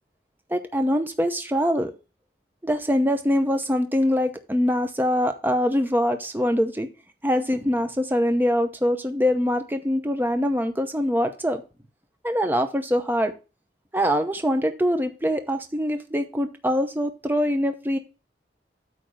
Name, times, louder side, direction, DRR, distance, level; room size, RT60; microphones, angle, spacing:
voice 1, 0.5-1.9 2.6-6.9 7.2-11.6 12.2-13.3 13.9-18.0, equal, 10° right, 7 dB, 0.7 m, -23 dB
8.7 x 3.4 x 6.3 m, 0.31 s
head